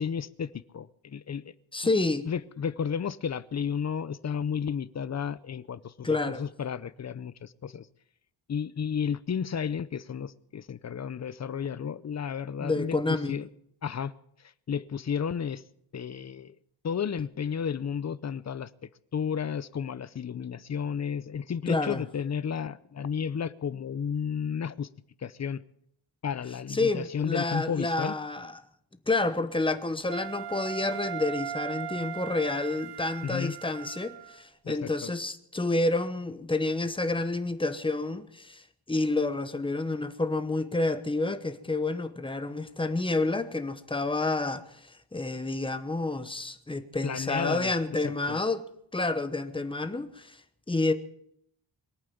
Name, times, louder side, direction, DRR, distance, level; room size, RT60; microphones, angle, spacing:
voice 1, 0.0-1.5 2.3-7.9 8.5-13.5 13.8-14.1 14.7-15.6 15.9-16.5 16.8-18.7 19.1-24.9 25.2-25.6 26.2-28.1 33.2-33.5 34.6-35.1 47.0-48.4, left 7 dB, 35° left, 0.6 m, -32 dB
voice 2, 1.7-2.3 6.0-6.5 12.6-13.4 21.7-22.0 26.7-28.6 29.1-38.6 38.9-50.4 50.7-50.9, left 2 dB, 10° left, 1.0 m, -29 dB
Wind instrument woodwind instrument, 30.1-34.4, right 9 dB, 55° right, 0.7 m, -38 dB
22.5 x 8.8 x 7.1 m
wide cardioid pair, 145°, 47 cm